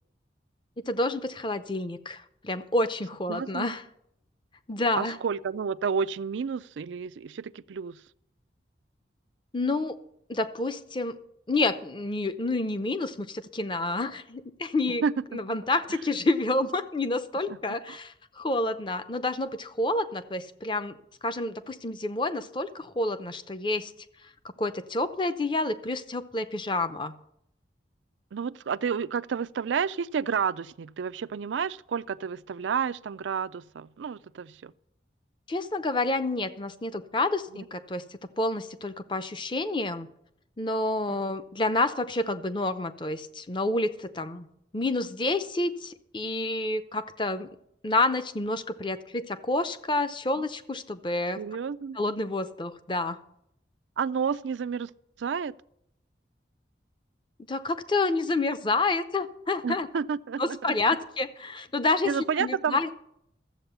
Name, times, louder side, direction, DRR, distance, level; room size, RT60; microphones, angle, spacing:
voice 1, 0.8-3.8 4.7-5.2 9.5-10.0 10.3-11.2 11.5-15.0 15.3-21.0 21.2-23.9 24.6-27.1 35.5-38.0 38.4-40.1 40.6-44.5 44.7-47.5 47.8-51.4 52.0-53.2 57.5-59.9 60.4-62.1 62.4-62.9, left 2 dB, 25° left, 0.7 m, -29 dB
voice 2, 3.3-3.6 4.9-8.0 15.0-15.4 17.5-18.0 28.3-34.7 37.5-37.7 41.1-41.2 51.4-52.0 54.0-54.9 55.2-55.6 59.6-60.7 62.0-62.8, right 6 dB, 90° right, 0.4 m, -30 dB
13.5 x 7.9 x 6.8 m
head